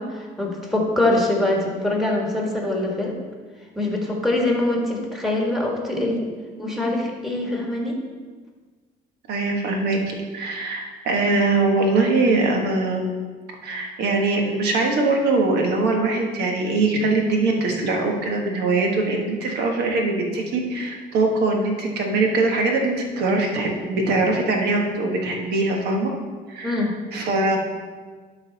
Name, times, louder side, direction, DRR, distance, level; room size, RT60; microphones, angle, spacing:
voice 1, 0.0-3.1 3.7-6.2 6.6-8.0 26.6-26.9, left 2 dB, ahead, -1 dB, 1.6 m, -23 dB
voice 2, 9.3-10.0 10.3-13.1 13.6-26.1 26.5-26.8 27.1-27.6, right 3 dB, 75° right, 2 dB, 1.4 m, -22 dB
11.5 x 4.0 x 4.0 m, 1.5 s
cardioid pair, 110°, 17 cm